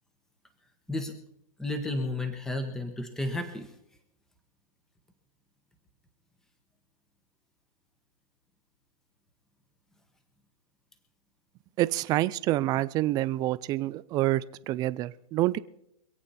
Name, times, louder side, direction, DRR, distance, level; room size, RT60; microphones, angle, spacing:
voice 1, 1.6-3.7, left 2 dB, 5° left, 6 dB, 1.2 m, -32 dB
voice 2, 11.8-15.6, right 16 dB, 20° right, 16 dB, 0.4 m, -27 dB
25.5 x 8.7 x 4.2 m, 0.80 s
hypercardioid pair, 155°, 19 cm